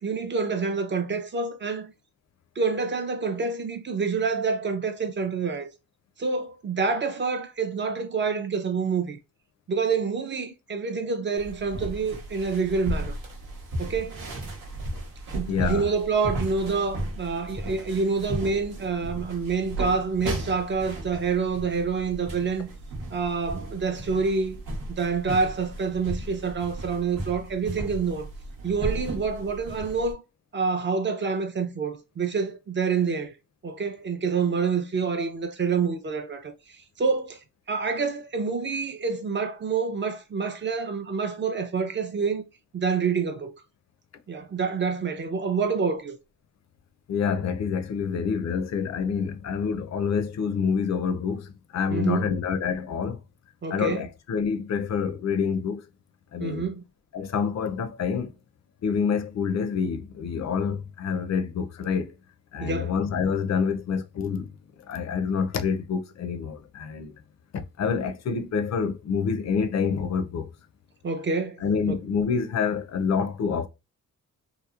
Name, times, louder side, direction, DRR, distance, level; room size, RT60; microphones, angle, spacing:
voice 1, 0.0-1.9 2.6-5.7 6.2-9.2 9.7-13.1 13.8-14.3 15.3-22.7 23.1-24.6 24.9-28.3 28.6-30.2 30.5-33.3 33.6-36.5 37.0-37.4 37.7-42.4 42.7-43.5 44.3-46.2 51.9-52.3 53.6-54.1 56.4-56.8 62.6-62.9 71.0-71.6, right 5 dB, 35° right, 0.4 m, -27 dB
sound 1, 11.4-30.1, right 1 dB, 85° right, 0.9 m, -35 dB
voice 2, 15.5-15.9 47.1-53.2 53.7-55.9 56.3-56.6 57.1-58.3 58.8-62.1 62.5-64.5 64.9-67.1 67.5-70.5 71.6-73.7, left 6 dB, 55° left, 0.5 m, -27 dB
2.8 x 2.0 x 2.3 m
cardioid pair, 95°, 33 cm